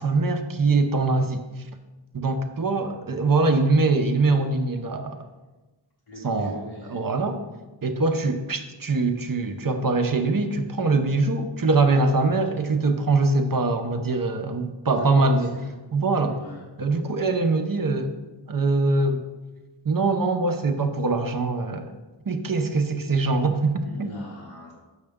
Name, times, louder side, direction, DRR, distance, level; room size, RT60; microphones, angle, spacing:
voice 1, 0.0-1.4 2.1-5.2 6.2-6.6 6.9-7.4 7.8-15.5 15.9-16.4 16.8-18.1 18.5-19.2 19.8-21.9 22.3-24.1, right 3 dB, 45° right, 6 dB, 0.8 m, -23 dB
voice 2, 6.1-7.2 15.1-15.7 16.3-16.6 23.8-24.7, equal, 85° left, -7 dB, 1.5 m, -41 dB
6.6 x 6.4 x 3.6 m, 1.2 s
wide cardioid pair, 50°, 46 cm